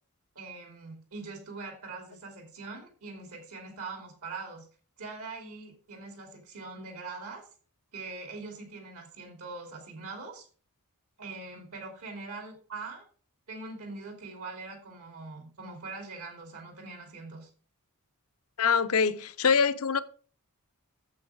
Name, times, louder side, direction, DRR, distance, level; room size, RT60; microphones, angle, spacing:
voice 1, 0.3-4.7 5.0-7.4 7.9-10.5 11.2-13.0 13.5-17.5, right 3 dB, 75° right, 2.9 m, -42 dB
voice 2, 18.6-20.0, left 6 dB, 70° left, 0.7 m, -24 dB
8.5 x 7.2 x 4.7 m
head